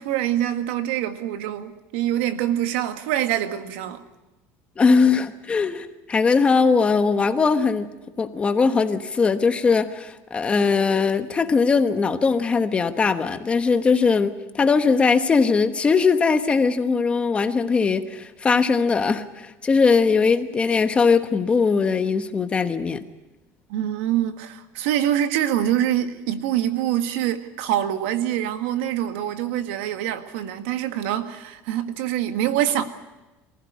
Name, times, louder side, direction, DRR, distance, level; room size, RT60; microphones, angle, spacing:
voice 1, 0.0-4.0 23.7-32.8, right 11 dB, 90° right, 1.9 m, -25 dB
voice 2, 4.8-7.9 8.2-23.0, left 5 dB, 20° left, 1.2 m, -20 dB
24.5 x 15.5 x 9.6 m
cardioid pair, 155°, 6 cm